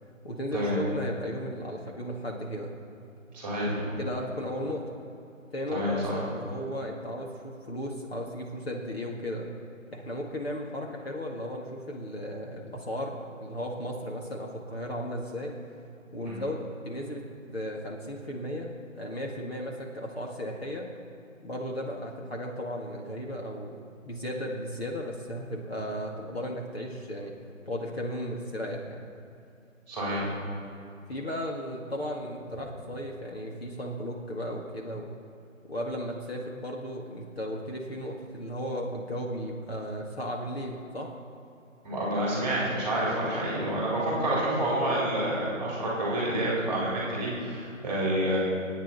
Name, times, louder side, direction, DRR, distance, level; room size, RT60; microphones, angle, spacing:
voice 1, 0.2-2.7 4.0-5.0 5.5-9.5 9.9-15.5 16.1-17.2 17.5-18.7 19.0-20.9 21.4-23.8 24.1-27.3 27.7-29.1 31.1-35.1 35.7-41.1, equal, 50° left, -1 dB, 1.9 m, -35 dB
voice 2, 3.3-3.8 5.7-6.2 16.2-16.4 29.9-30.3 41.8-48.4, right 1 dB, 5° right, -7 dB, 3.8 m, -28 dB
26.0 x 9.1 x 4.2 m, 2.6 s
figure-of-eight pair, 160°, 40 cm